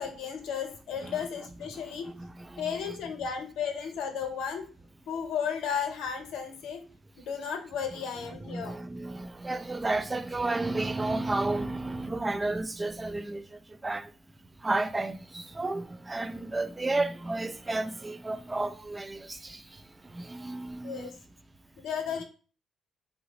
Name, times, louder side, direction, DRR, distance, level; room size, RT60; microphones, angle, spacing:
voice 1, 0.0-2.1 2.6-4.6 5.1-6.8 7.2-8.8 20.8-21.1 21.8-22.2, left 7 dB, 85° left, 0.7 m, -34 dB
voice 2, 8.4-14.1 14.6-19.8 20.1-21.1, right 2 dB, 20° right, 0.3 m, -32 dB
2.7 x 2.0 x 4.0 m
cardioid pair, 90°, 0 cm